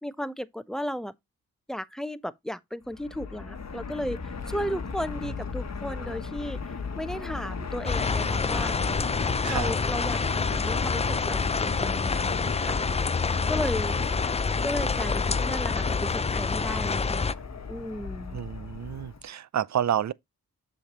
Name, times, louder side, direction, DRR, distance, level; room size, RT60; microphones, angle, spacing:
voice 1, 0.0-1.1 1.7-6.6 7.0-8.8 9.5-12.8 13.5-14.0 14.6-17.4 17.7-18.4, equal, ahead, 0.7 m, -34 dB
Fixed-wing aircraft airplane, 2.9-19.3, left 5 dB, 45° left, 1.2 m, -37 dB
sound 1, 7.8-17.3, left 4 dB, 20° left, 0.4 m, -27 dB
voice 2, 18.3-20.1, right 10 dB, 50° right, 0.5 m, -29 dB
7.0 x 5.8 x 3.0 m
cardioid pair, 45°, 36 cm